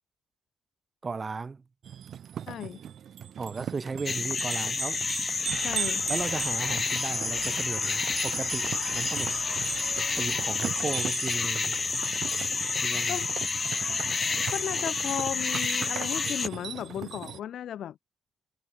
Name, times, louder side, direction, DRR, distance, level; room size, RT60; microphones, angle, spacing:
voice 1, 1.0-1.6 3.4-5.0 6.1-9.3 10.2-11.8 12.8-13.2, right 4 dB, 30° right, 0.8 m, -35 dB
sound 1, 1.8-17.4, right 9 dB, 65° right, 3.3 m, -38 dB
voice 2, 2.5-2.8 5.5-6.1 13.1-13.3 14.5-18.0, left 10 dB, 70° left, 1.1 m, -35 dB
sound 2, 4.1-16.5, left 4 dB, 35° left, 1.2 m, -29 dB
sound 3, 5.5-10.6, right 15 dB, 90° right, 3.9 m, -46 dB
cardioid pair, 90°, 0 cm